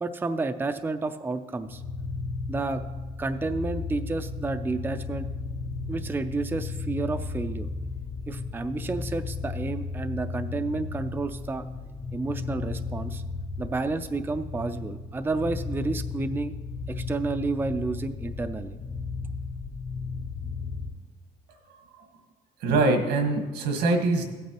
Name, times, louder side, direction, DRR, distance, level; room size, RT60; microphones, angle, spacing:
voice 1, 0.0-1.8 2.5-2.8 3.2-5.3 5.9-7.7 8.3-11.7 12.1-13.2 13.6-16.6 16.9-18.8, right 3 dB, 10° right, 8 dB, 0.4 m, -30 dB
sound 1, 1.6-20.9, left 4 dB, 80° left, 2.7 m, -35 dB
voice 2, 22.6-24.3, right 3 dB, 85° right, 4 dB, 1.5 m, -23 dB
15.5 x 8.5 x 3.0 m, 1.3 s
cardioid pair, 110°, 17 cm